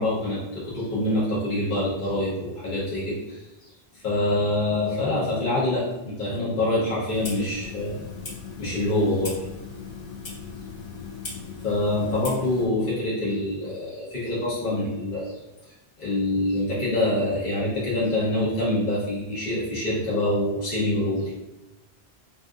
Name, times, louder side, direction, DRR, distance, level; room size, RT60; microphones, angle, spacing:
voice 1, 0.0-3.4 4.0-8.0 8.6-9.3 11.6-15.3 16.0-21.3, left 1 dB, 50° left, -8 dB, 1.1 m, -25 dB
Clock, 7.1-12.7, left 4 dB, 35° left, 0.5 m, -38 dB
2.7 x 2.5 x 3.6 m, 0.98 s
omnidirectional pair, 1.0 m